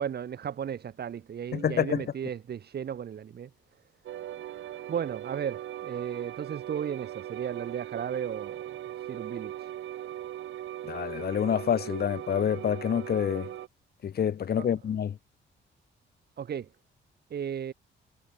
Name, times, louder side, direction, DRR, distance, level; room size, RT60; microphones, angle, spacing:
voice 1, 0.0-3.5 4.9-8.6 9.1-9.7 14.6-14.7 16.4-16.7 17.3-17.7, right 8 dB, 55° right, 2.7 m, -35 dB
voice 2, 1.5-2.0 10.8-13.5 14.0-15.2, left 8 dB, 50° left, 1.8 m, -27 dB
sound 1, 4.1-13.7, right 12 dB, 75° right, 3.5 m, -39 dB
cardioid pair, 90°, 20 cm